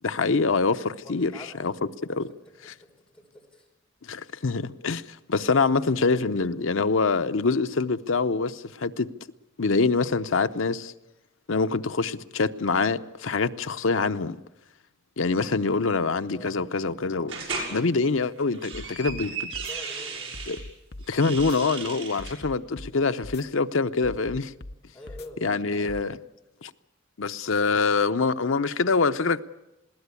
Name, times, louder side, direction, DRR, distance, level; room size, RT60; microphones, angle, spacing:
voice 1, 0.0-1.3 1.6-1.7 2.1-2.3 2.6-2.7 4.0-5.0 5.3-9.1 9.6-10.9 11.5-14.4 15.2-17.4 17.7-19.5 20.5-20.6 21.1-24.5 25.4-26.2 26.6-26.7 27.2-29.4, left 4 dB, 90° left, 0.8 m, -25 dB
voice 2, 1.0-1.5 2.1-2.2 2.8-3.7 16.3-16.7 19.6-20.3 24.9-26.0, left 1 dB, 5° left, 5.1 m, -46 dB
sound 1, 17.3-17.7 18.4-20.6 21.1-22.4, right 5 dB, 70° right, 6.3 m, -35 dB
sound 2, 18.7-19.2 19.5-19.7 20.3-21.1 21.4-21.6 22.2-22.9 23.2-23.4 24.0-24.8 25.1-25.3 25.9-26.0, left 1 dB, 55° left, 0.8 m, -40 dB
21.0 x 17.0 x 8.4 m
head